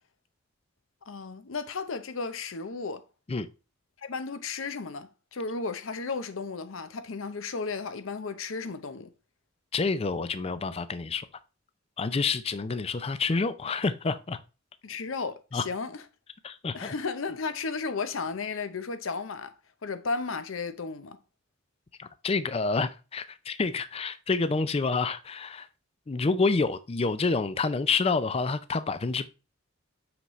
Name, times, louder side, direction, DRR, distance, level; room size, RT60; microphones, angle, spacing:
voice 1, 1.1-3.0 4.0-9.1 14.8-16.0 16.7-19.5 19.8-21.2, left 4 dB, 75° left, 0.7 m, -34 dB
voice 2, 9.7-11.3 12.0-14.4 15.5-15.6 16.4-16.9 22.0-25.7 26.1-29.3, left 4 dB, 30° left, 0.4 m, -28 dB
5.8 x 5.6 x 3.1 m
head